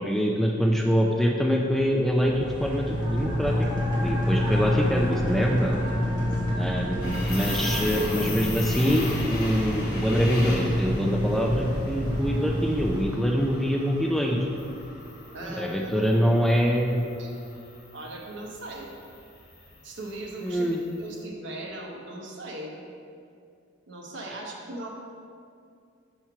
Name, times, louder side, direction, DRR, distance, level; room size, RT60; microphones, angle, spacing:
voice 1, 0.0-3.7 3.9-5.8 6.6-14.5 15.4-17.0 20.4-20.8, equal, ahead, 0 dB, 0.3 m, -24 dB
sound 1, 1.8-13.0, equal, 20° right, 1.2 m, -28 dB
voice 2, 6.0-6.6 15.3-16.3 17.2-17.3 17.9-18.9 19.8-22.7 23.9-24.9, right 1 dB, 60° right, 0 dB, 0.9 m, -39 dB
sound 2, 7.0-21.1, left 2 dB, 50° left, 1.1 m, -39 dB
5.8 x 4.4 x 4.6 m, 2.4 s
head